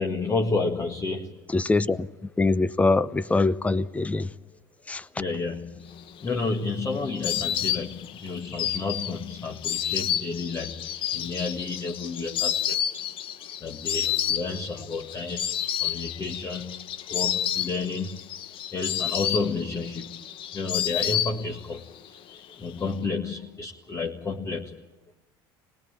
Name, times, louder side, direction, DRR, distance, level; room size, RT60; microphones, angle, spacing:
voice 1, 0.0-1.5 5.1-12.8 13.6-24.8, left 3 dB, 30° left, 1.8 m, -31 dB
voice 2, 1.5-4.3 4.9-5.1, left 3 dB, 10° left, 0.7 m, -24 dB
Insect, 6.1-21.8 22.0-22.9, left 10 dB, 50° left, 1.0 m, -30 dB
25.5 x 20.0 x 8.8 m
supercardioid pair, 115°, 11 cm